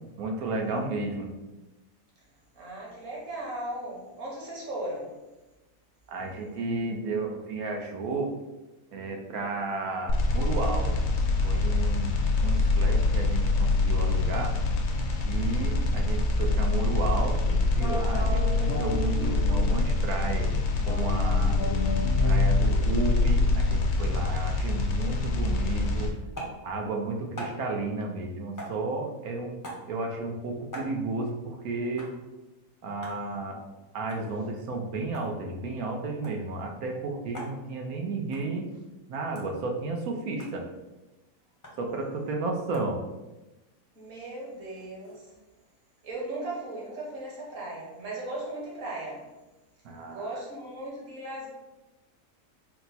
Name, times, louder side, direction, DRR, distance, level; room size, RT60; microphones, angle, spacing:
voice 1, 0.2-1.3 6.1-8.3 8.9-10.9 11.4-14.6 15.2-20.6 20.9-21.6 22.2-26.1 26.6-29.6 29.9-32.1 32.8-33.6 33.9-38.6 39.1-40.6 41.8-43.0 49.8-50.4, right 3 dB, 70° right, 2 dB, 1.0 m, -33 dB
voice 2, 2.5-5.1 43.9-45.3 46.0-49.3 50.0-51.5, right 1 dB, 55° right, -4 dB, 1.5 m, -37 dB
sound 1, 10.1-26.1, left 3 dB, 75° left, 1.2 m, -25 dB
sound 2, 17.8-20.1 20.8-24.2, left 1 dB, 50° left, 0.8 m, -33 dB
sound 3, 26.3-26.6 27.4-27.6 28.6-28.8 29.6-29.9 30.7-30.9 32.0-32.1 33.0-33.2 34.1-34.3 35.0-35.3 36.2-36.4 37.3-37.6 38.3-38.5 39.3-39.5 40.4-40.5 41.6-41.8 42.7-42.9 44.5-45.2, equal, 20° left, 0.6 m, -40 dB
4.3 x 2.0 x 4.0 m, 1.1 s
omnidirectional pair, 1.7 m